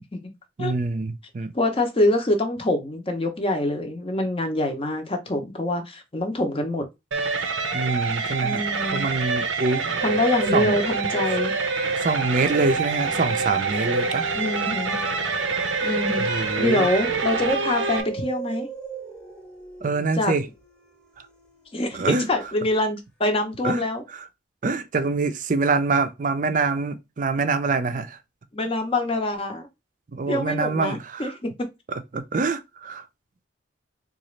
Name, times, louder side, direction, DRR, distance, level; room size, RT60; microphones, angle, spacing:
voice 1, 0.6-1.5 7.7-8.6 8.9-9.8 10.5-10.8 12.0-14.2 16.2-16.9 19.8-20.5 21.9-22.3 23.6-23.8 24.6-28.2 30.1-31.3 32.1-33.0, right 3 dB, 45° right, 0.4 m, -25 dB
voice 2, 1.5-6.8 8.4-9.0 10.0-11.5 14.3-15.0 15.8-18.7 20.1-20.4 21.7-24.0 28.5-29.7 30.3-31.5, left 1 dB, 30° left, 0.6 m, -25 dB
sound 1, 7.1-18.0, right 4 dB, 90° right, 0.6 m, -26 dB
sound 2, 9.9-22.2 22.7-22.8, right 3 dB, 5° left, 0.9 m, -41 dB
3.8 x 2.4 x 3.1 m
head